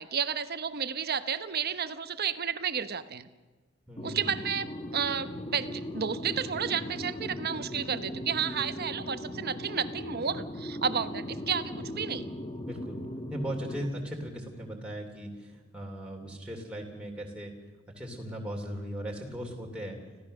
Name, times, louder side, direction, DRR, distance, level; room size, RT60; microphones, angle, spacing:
voice 1, 0.0-3.3 4.0-12.3, right 7 dB, 50° right, 12 dB, 1.0 m, -32 dB
voice 2, 3.9-4.3 12.6-13.0 13.3-17.5 17.9-20.0, equal, 5° right, -1 dB, 3.0 m, -38 dB
sound 1, 4.0-13.9, left 1 dB, 25° left, 1.4 m, -38 dB
26.0 x 16.0 x 6.6 m, 1.2 s
head